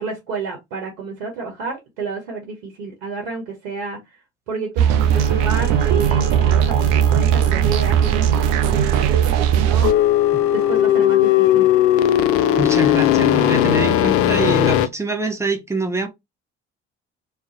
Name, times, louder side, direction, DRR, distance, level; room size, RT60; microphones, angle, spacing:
voice 1, 0.0-4.0 4.5-9.9 10.5-11.7, right 5 dB, 70° right, 0.9 m, -30 dB
sound 1, 4.8-9.9, right 10 dB, 55° right, 0.5 m, -17 dB
sound 2, 4.9-9.9, left 8 dB, 15° left, 1.1 m, -35 dB
sound 3, 9.8-14.9, left 12 dB, 45° left, 0.4 m, -17 dB
voice 2, 12.6-16.1, right 2 dB, 10° right, 0.7 m, -24 dB
2.5 x 2.1 x 3.8 m
figure-of-eight pair, 50°, 34 cm